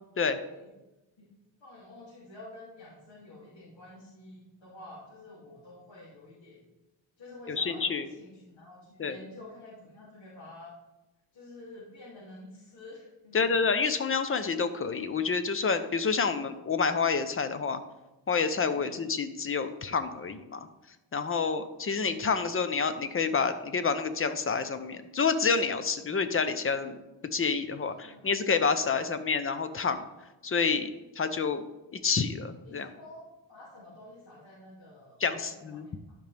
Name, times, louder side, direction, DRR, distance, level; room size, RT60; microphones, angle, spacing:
voice 1, 0.2-0.6 1.2-1.3 1.6-6.6 7.2-10.7 11.3-13.5 16.3-16.5 18.7-19.0 27.9-28.3 28.9-29.1 32.6-36.2, left 2 dB, 70° left, -9 dB, 2.8 m, -49 dB
voice 2, 7.5-8.1 9.0-9.2 13.3-17.8 18.3-20.7 21.1-27.0 27.3-30.0 30.4-30.9 31.2-31.6 31.9-32.9 35.2-35.9, left 5 dB, 30° left, 11 dB, 0.6 m, -28 dB
12.0 x 5.2 x 3.4 m, 1.0 s
cardioid pair, 115°, 45 cm